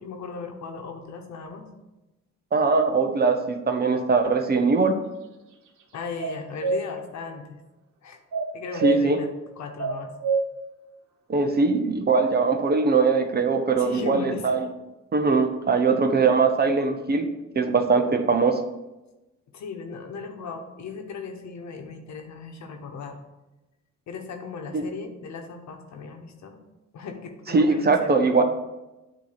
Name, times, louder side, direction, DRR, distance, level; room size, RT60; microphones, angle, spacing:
voice 1, 0.0-1.7 5.9-7.6 8.0-8.2 8.5-9.3 9.6-10.1 13.8-14.5 19.5-23.2 24.1-26.6 26.9-28.4, left 5 dB, 65° left, 4 dB, 1.1 m, -37 dB
voice 2, 2.5-5.0 8.8-9.2 11.3-14.7 15.1-17.3 17.6-18.6 24.7-24.8 27.5-28.4, right 4 dB, 35° right, 6 dB, 0.7 m, -21 dB
sound 1, 6.2-6.8 8.3-9.0 9.8-10.4, right 4 dB, 75° right, 1.2 m, -25 dB
8.7 x 3.0 x 5.7 m, 1.0 s
cardioid pair, 90°, 30 cm